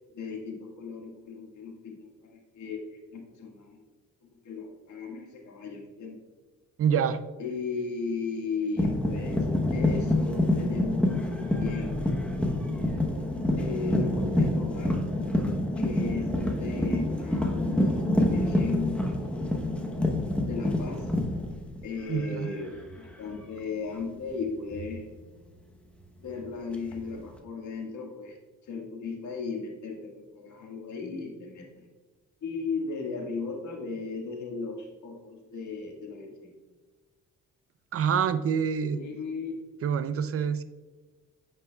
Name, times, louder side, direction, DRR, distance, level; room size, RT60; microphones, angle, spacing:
voice 1, 0.1-2.8 3.1-3.8 4.2-6.2 7.4-12.0 13.6-15.1 15.8-19.2 20.4-21.1 21.8-25.1 26.2-28.4 28.6-31.8 32.4-36.5 38.9-39.5, left 5 dB, 70° left, 0 dB, 1.7 m, -36 dB
voice 2, 6.8-7.2 22.1-22.6 37.9-39.0 39.8-40.6, right 7 dB, 50° right, 12 dB, 0.5 m, -26 dB
sound 1, 8.8-22.3 22.5-23.0 24.7-24.9 26.7-27.4, left 1 dB, 5° left, 0.9 m, -27 dB
8.8 x 5.5 x 2.3 m, 1.3 s
cardioid pair, 90°, 30 cm